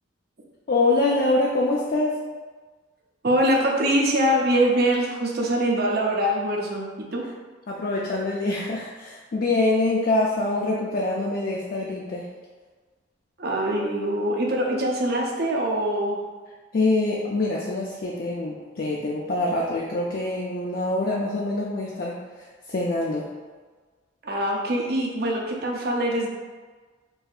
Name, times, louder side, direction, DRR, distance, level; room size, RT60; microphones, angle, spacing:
voice 1, 0.7-2.2 7.7-12.3 16.7-23.3, left 2 dB, 50° left, -3 dB, 0.4 m, -25 dB
voice 2, 3.2-7.3 13.4-16.2 24.2-26.3, right 1 dB, 55° right, 0 dB, 0.6 m, -23 dB
5.4 x 2.7 x 2.4 m, 1.4 s
head